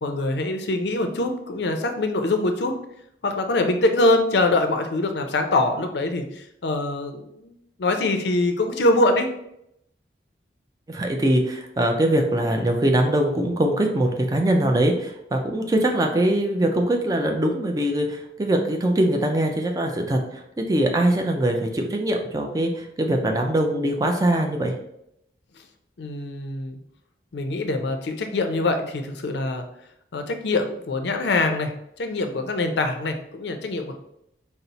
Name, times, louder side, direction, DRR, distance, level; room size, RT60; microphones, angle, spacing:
voice 1, 0.0-2.7 3.2-7.5 7.8-9.3 26.0-26.8 27.3-29.6 30.1-33.9, left 2 dB, 75° left, 6 dB, 0.5 m, -24 dB
voice 2, 10.9-24.8, right 1 dB, 20° right, 3 dB, 0.4 m, -22 dB
4.1 x 2.0 x 3.9 m, 0.77 s
head